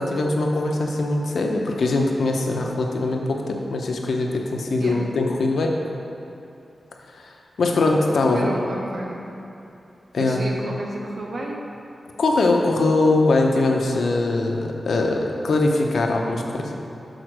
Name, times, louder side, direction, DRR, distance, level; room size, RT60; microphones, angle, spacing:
voice 1, 0.0-5.8 7.1-7.3 7.6-8.5 10.1-10.4 12.2-16.8, left 2 dB, 85° left, 1 dB, 0.7 m, -22 dB
voice 2, 8.2-9.2 10.2-11.6, right 1 dB, 55° right, -1 dB, 0.9 m, -31 dB
6.5 x 4.4 x 6.3 m, 2.7 s
wide cardioid pair, 130°, 0 cm